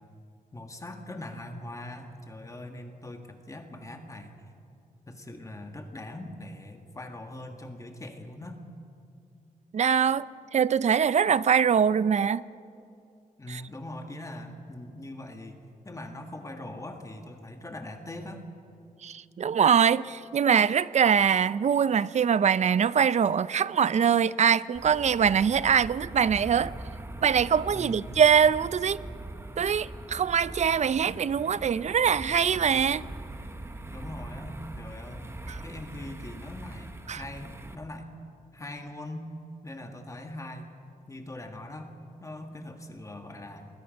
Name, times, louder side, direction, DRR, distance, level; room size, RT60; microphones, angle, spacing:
voice 1, 0.5-4.4 5.1-8.6 13.4-18.4 27.7-28.3 33.9-35.3 35.6-38.1 38.5-39.3 39.6-40.7 41.1-43.7, left 1 dB, 20° left, 1.7 m, -41 dB
voice 2, 9.7-10.2 10.5-12.4 13.5-13.6 19.0-26.7 27.2-29.0 29.6-33.0 35.5-35.6 37.1-37.2, right 7 dB, 50° right, 0.5 m, -23 dB
sound 1, 24.7-37.8, right 2 dB, 15° right, 1.2 m, -42 dB
27.5 x 21.5 x 5.3 m
wide cardioid pair, 150°, 15 cm